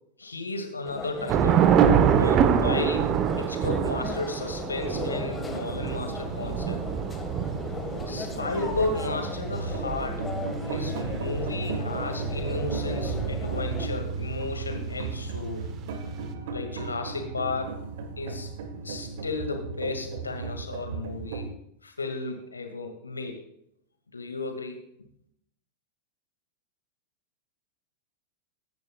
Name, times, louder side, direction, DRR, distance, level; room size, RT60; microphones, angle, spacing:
voice 1, 0.2-1.7 2.1-3.1 3.4-6.8 8.1-10.2 10.7-15.7 16.5-17.8 18.2-18.5 18.8-21.5 21.8-23.4 24.1-24.8, left 3 dB, 75° left, 5 dB, 2.1 m, -33 dB
sound 1, 0.8-13.9, left 4 dB, 15° left, 1.6 m, -38 dB
Thunder / Rain, 1.3-13.8, right 8 dB, 35° right, 1.0 m, -26 dB
sound 2, 4.8-21.5, right 4 dB, 55° right, 1.4 m, -35 dB
23.0 x 10.5 x 2.4 m, 0.73 s
figure-of-eight pair, 90°, 0 cm